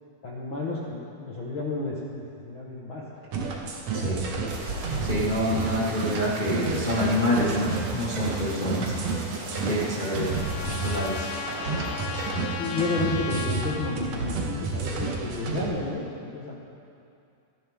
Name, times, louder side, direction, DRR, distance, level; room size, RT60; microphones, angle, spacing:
voice 1, 0.2-3.3 12.6-16.6, left 3 dB, 70° left, -5 dB, 1.2 m, -31 dB
sound 1, 3.3-15.7, right 4 dB, 55° right, 1.9 m, -30 dB
sound 2, 4.4-13.1, right 2 dB, 80° right, 4.4 m, -40 dB
voice 2, 5.0-8.9 9.6-11.3, left 1 dB, 50° left, -7 dB, 0.5 m, -27 dB
Trumpet, 9.4-14.0, left 6 dB, 90° left, 3.1 m, -36 dB
25.5 x 11.0 x 3.7 m, 2.5 s
omnidirectional pair, 4.7 m